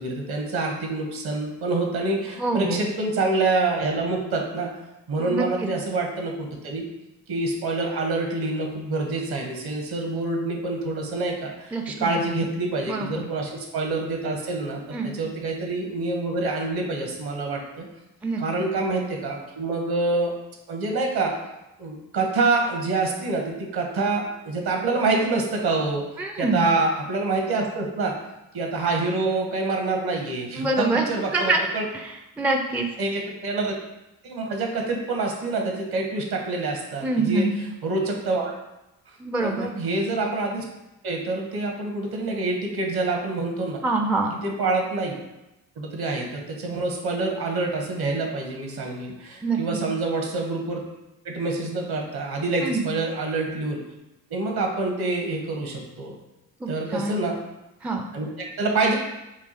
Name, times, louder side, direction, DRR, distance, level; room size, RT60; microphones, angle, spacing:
voice 1, 0.0-4.7 5.1-6.9 7.3-17.9 18.4-20.3 20.7-21.3 21.8-26.0 26.4-28.1 28.5-31.8 33.0-33.7 34.2-38.5 39.4-40.6 41.0-43.8 44.4-45.1 45.8-50.8 51.2-53.8 54.3-56.2 56.7-57.4 58.1-58.3 58.6-58.9, right 3 dB, 55° right, 1 dB, 1.2 m, -26 dB
voice 2, 2.4-2.8 5.2-5.5 11.7-12.3 12.9-13.3 14.9-15.1 18.2-18.7 26.2-26.7 30.6-31.6 32.4-32.9 37.0-37.6 39.2-39.7 43.8-44.3 49.4-49.8 52.6-52.8 56.6-57.2 57.8-58.0, right 2 dB, 5° right, 3 dB, 0.4 m, -25 dB
4.7 x 2.3 x 4.2 m, 0.94 s
hypercardioid pair, 55°, 45 cm